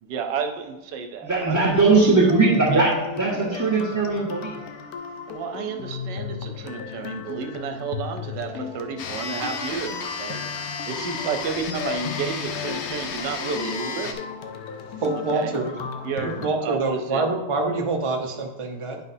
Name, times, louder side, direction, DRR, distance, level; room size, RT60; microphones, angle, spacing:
voice 1, 0.0-2.2 2.7-2.9 5.3-10.4 10.9-14.2 14.5-14.6 15.1-15.6 16.0-17.2, right 6 dB, 80° right, 5 dB, 1.4 m, -31 dB
sound 1, 1.2-16.5, left 7 dB, 70° left, 0.9 m, -36 dB
voice 2, 1.2-2.9 3.2-4.6, right 3 dB, 10° right, -10 dB, 1.3 m, -19 dB
sound 2, 9.0-14.1, left 5 dB, 85° left, 0.6 m, -33 dB
voice 3, 15.0-15.8 16.2-19.0, right 3 dB, 50° right, 1 dB, 0.3 m, -26 dB
9.7 x 5.7 x 2.7 m, 1.0 s
omnidirectional pair, 1.9 m